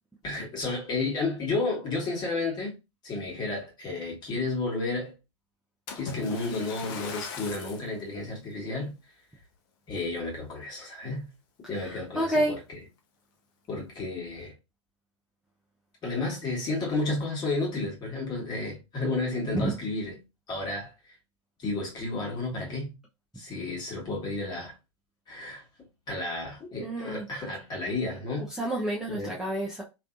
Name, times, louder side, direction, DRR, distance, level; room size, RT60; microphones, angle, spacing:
voice 1, 0.2-2.8 3.0-5.2 5.9-8.9 9.9-11.3 11.7-12.6 13.7-14.5 16.0-20.2 20.5-20.9 21.6-22.9 23.3-24.7 25.3-25.6 26.1-28.5 29.1-29.3, left 2 dB, 25° left, 1.5 m, -32 dB
Splash splatter, 5.9-7.9 8.6-8.8 9.4-9.5, left 4 dB, 45° left, 0.8 m, -39 dB
voice 2, 11.8-12.6 19.5-19.7 26.8-27.3 28.6-29.8, right 1 dB, 5° right, 0.6 m, -29 dB
3.3 x 2.7 x 2.5 m
figure-of-eight pair, 100°, 16 cm